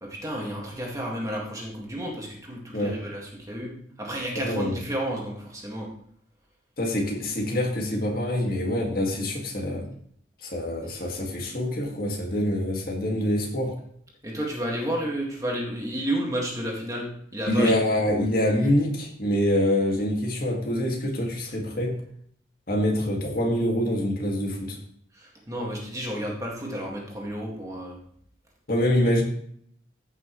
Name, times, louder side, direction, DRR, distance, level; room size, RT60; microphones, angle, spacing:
voice 1, 0.0-5.9 14.2-17.7 25.1-28.0, right 1 dB, 15° right, -2 dB, 2.0 m, -31 dB
voice 2, 4.4-4.8 6.8-9.9 10.4-13.8 17.5-22.0 22.7-24.8 28.7-29.2, left 1 dB, 50° left, 0 dB, 2.1 m, -25 dB
15.0 x 6.2 x 3.2 m, 0.65 s
head